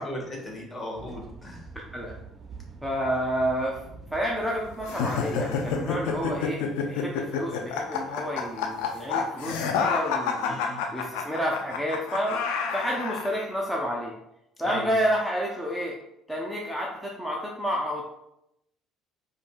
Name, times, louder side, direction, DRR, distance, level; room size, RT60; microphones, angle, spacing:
voice 1, 0.0-1.7 10.4-10.8 14.6-14.9, left 1 dB, 30° left, 0 dB, 1.3 m, -36 dB
sound 1, 1.0-6.5, right 4 dB, 35° right, 0.5 m, -46 dB
voice 2, 2.8-3.8 4.1-6.6 6.9-12.4 12.7-14.1 14.6-16.0 16.3-18.1, equal, ahead, -3 dB, 0.6 m, -30 dB
sound 2, 4.8-13.3, left 5 dB, 80° left, 0.4 m, -29 dB
5.1 x 2.6 x 2.3 m, 0.84 s
hypercardioid pair, 65°, 0 cm